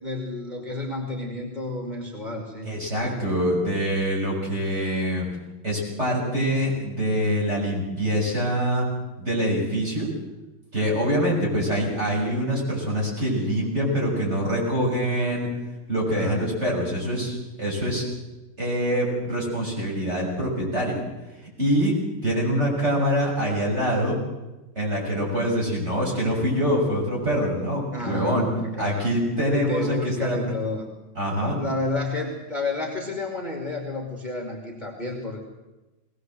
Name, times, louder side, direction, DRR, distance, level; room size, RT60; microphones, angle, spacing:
voice 1, 0.0-2.7 16.0-16.5 27.9-29.1 29.5-30.8 31.5-35.4, left 2 dB, 20° left, 0 dB, 2.8 m, -30 dB
voice 2, 2.6-5.3 5.6-8.9 9.2-10.1 10.7-15.5 15.9-18.0 18.6-21.0 21.6-21.9 22.2-24.2 24.8-28.5 28.8-30.4 31.2-31.6, equal, 30° right, -3 dB, 7.1 m, -25 dB
20.5 x 19.0 x 7.8 m, 1.1 s
omnidirectional pair, 2.4 m